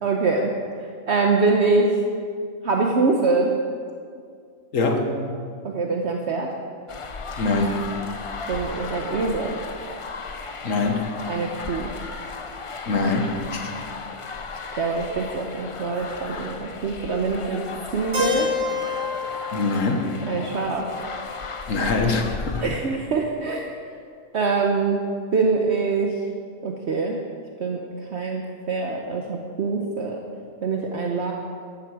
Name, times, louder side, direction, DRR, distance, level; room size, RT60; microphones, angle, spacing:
voice 1, 0.0-0.5 1.1-1.9 2.6-3.5 5.6-6.5 8.5-9.6 11.3-11.9 14.8-17.6 17.9-18.5 20.3-20.9 22.6-23.7 24.3-25.0 25.3-26.1 26.6-27.2 27.6-27.8 28.1-28.4 28.7-30.2 30.6-31.3, right 4 dB, 55° right, 1 dB, 1.2 m, -24 dB
voice 2, 4.7-5.1 7.4-8.0 10.6-11.1 12.9-13.7 19.5-20.1 21.7-22.7, left 3 dB, 75° left, 4 dB, 1.7 m, -23 dB
sound 1, 6.9-22.6, left 4 dB, 45° left, 0.4 m, -35 dB
Keyboard (musical), 18.1-22.0, left 4 dB, 85° right, 3.8 m, -30 dB
14.0 x 12.0 x 4.9 m, 2.2 s
omnidirectional pair, 1.4 m